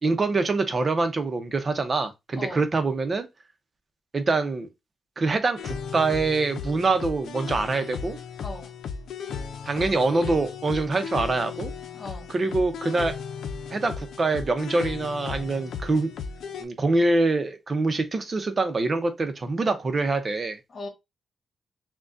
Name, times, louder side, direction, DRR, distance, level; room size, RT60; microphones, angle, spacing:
voice 1, 0.0-3.3 4.1-4.7 5.2-8.2 9.7-11.7 12.3-13.1 13.7-16.1 16.6-20.6, right 3 dB, 35° right, 0.7 m, -25 dB
sound 1, 5.6-16.6, left 6 dB, 85° left, 0.6 m, -35 dB
voice 2, 8.4-8.7 11.9-12.3 20.7-20.9, left 2 dB, 45° left, 1.9 m, -38 dB
6.1 x 2.3 x 2.6 m
cardioid pair, 105°, 0 cm